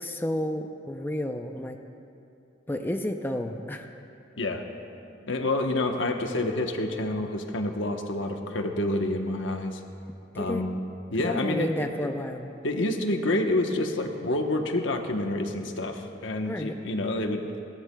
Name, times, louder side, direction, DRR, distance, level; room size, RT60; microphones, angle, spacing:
voice 1, 0.0-1.8 2.7-3.9 10.3-10.6 11.2-12.5 16.4-16.8, left 1 dB, 10° left, 5 dB, 0.5 m, -31 dB
voice 2, 5.3-9.8 10.3-10.8 11.1-11.9 12.6-17.4, left 1 dB, 80° left, 4 dB, 1.0 m, -28 dB
21.5 x 16.5 x 2.3 m, 2.7 s
head